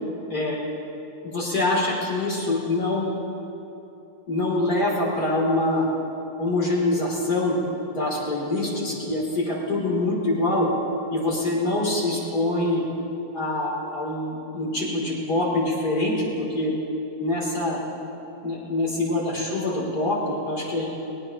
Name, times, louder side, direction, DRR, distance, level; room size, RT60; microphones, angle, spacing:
voice 1, 0.3-0.6 1.2-3.1 4.3-5.9 6.4-7.6 7.9-10.7 11.1-12.8 13.3-16.7 17.2-17.8 18.4-20.9, left 2 dB, 60° left, -4 dB, 3.7 m, -25 dB
19.5 x 18.5 x 3.0 m, 3.0 s
omnidirectional pair, 1.9 m